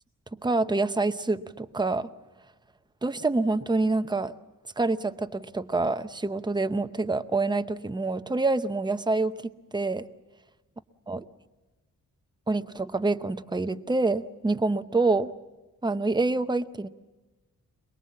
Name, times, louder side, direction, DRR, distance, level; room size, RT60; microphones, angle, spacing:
voice 1, 0.3-2.1 3.0-4.3 4.8-10.1 11.1-11.3 12.5-15.3 15.8-16.9, right 3 dB, 15° right, 10 dB, 0.7 m, -26 dB
23.0 x 22.0 x 7.4 m, 1.2 s
cardioid pair, 105°, 33 cm